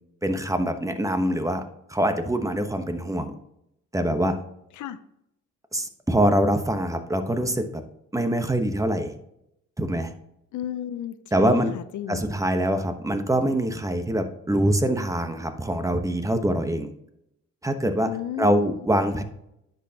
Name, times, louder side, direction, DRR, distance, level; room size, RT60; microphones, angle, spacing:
voice 1, 0.2-1.6 1.9-3.3 3.9-4.4 5.7-7.8 8.1-9.1 9.8-10.1 11.3-11.7 12.1-16.9 17.6-19.2, right 1 dB, 10° right, 8 dB, 1.0 m, -24 dB
voice 2, 10.5-12.2 18.0-18.7, left 11 dB, 75° left, 12 dB, 0.7 m, -33 dB
9.9 x 6.6 x 2.8 m, 0.79 s
cardioid pair, 90°, 30 cm